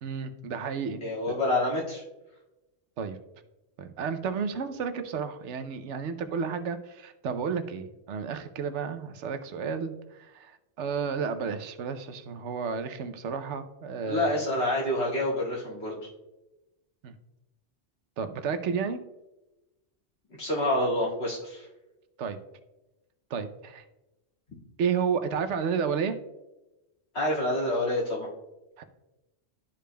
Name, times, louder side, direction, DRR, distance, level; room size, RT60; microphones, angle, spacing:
voice 1, 0.0-1.0 1.3-1.4 3.0-3.2 3.8-14.3 17.0-17.1 18.2-19.0 22.2-22.4 23.3-23.8 24.8-26.2 28.8-28.9, right 6 dB, 85° right, 9 dB, 1.0 m, -32 dB
voice 2, 1.0-2.0 14.0-16.0 20.4-21.7 27.1-28.3, left 1 dB, 75° left, -6 dB, 2.4 m, -27 dB
12.5 x 5.1 x 2.2 m, 1.0 s
omnidirectional pair, 1.2 m